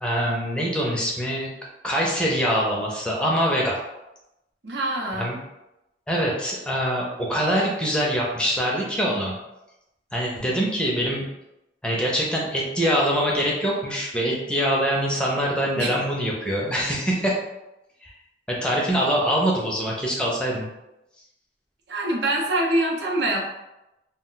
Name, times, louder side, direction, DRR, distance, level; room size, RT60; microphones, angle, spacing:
voice 1, 0.0-1.5 1.8-3.8 5.1-5.4 6.1-9.4 10.1-11.3 11.8-17.4 18.0-18.1 18.5-20.7, equal, 5° left, -3 dB, 0.5 m, -24 dB
voice 2, 4.6-5.3 15.8-15.9 21.9-23.4, right 1 dB, 80° right, -1 dB, 0.6 m, -24 dB
2.3 x 2.1 x 3.8 m, 0.92 s
head